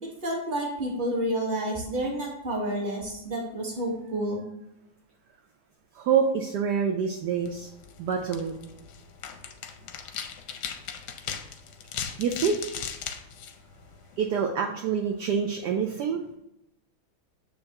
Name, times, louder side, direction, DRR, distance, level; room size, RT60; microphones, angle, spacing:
voice 1, 0.0-4.4, right 1 dB, 25° right, -2 dB, 1.4 m, -30 dB
voice 2, 5.9-7.7 8.0-8.5 12.2-12.6 14.2-16.2, right 6 dB, 70° right, 3 dB, 1.0 m, -26 dB
sound 1, 7.3-14.3, left 7 dB, 70° left, 1.1 m, -39 dB
7.0 x 5.6 x 2.9 m, 0.84 s
omnidirectional pair, 2.2 m